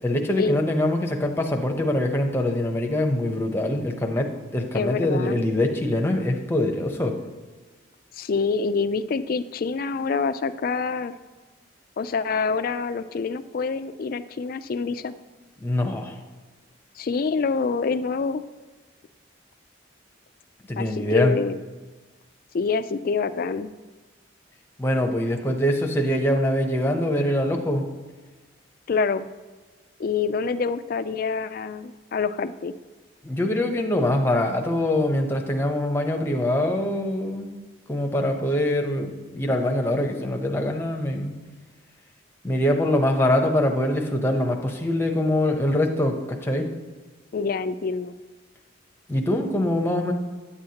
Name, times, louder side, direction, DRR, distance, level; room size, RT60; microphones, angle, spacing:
voice 1, 0.0-7.2 15.6-16.2 20.7-21.4 24.8-27.9 33.2-37.5 37.9-41.3 42.4-46.7 49.1-50.1, left 1 dB, 10° left, 2 dB, 0.7 m, -24 dB
voice 2, 4.7-5.4 8.1-11.1 12.0-15.1 17.0-18.4 20.8-21.6 22.5-23.7 28.9-29.3 30.0-32.7 47.3-48.1, left 4 dB, 45° left, 11 dB, 0.3 m, -26 dB
9.7 x 7.7 x 2.8 m, 1.3 s
head